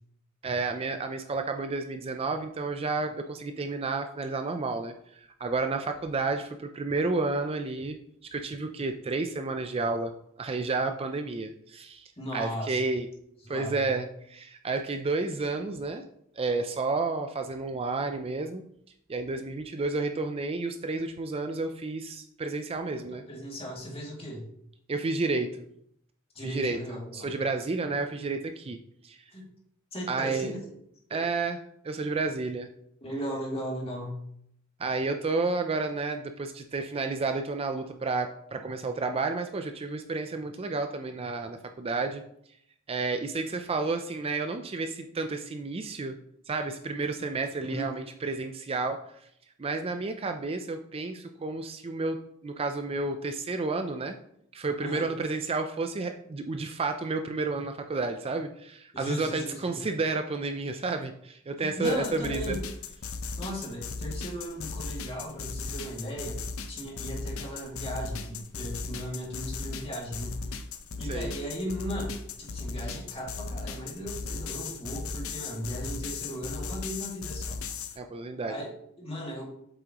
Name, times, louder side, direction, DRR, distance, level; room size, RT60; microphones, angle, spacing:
voice 1, 0.4-4.9 5.4-8.0 8.3-10.1 10.4-13.1 13.5-16.0 16.4-18.6 19.1-23.2 24.9-25.7 26.4-28.8 29.0-29.2 30.1-30.5 31.1-31.6 31.8-32.7 34.8-42.2 42.9-46.2 46.5-49.0 49.6-54.2 54.5-62.6 71.1-71.3 78.0-78.5, right 3 dB, 30° right, 6 dB, 0.4 m, -31 dB
voice 2, 12.2-12.8 13.4-14.0 22.9-24.5 26.3-27.3 29.3-29.4 29.9-30.7 31.1-31.2 33.0-34.2 47.6-47.9 54.8-55.1 58.9-59.9 61.6-62.6 63.4-66.4 66.7-70.5 71.0-77.6 78.5-79.4, equal, 30° left, -2 dB, 2.2 m, -37 dB
sound 1, 61.8-78.0, left 4 dB, 85° left, 0.7 m, -37 dB
8.0 x 7.5 x 3.0 m, 0.71 s
head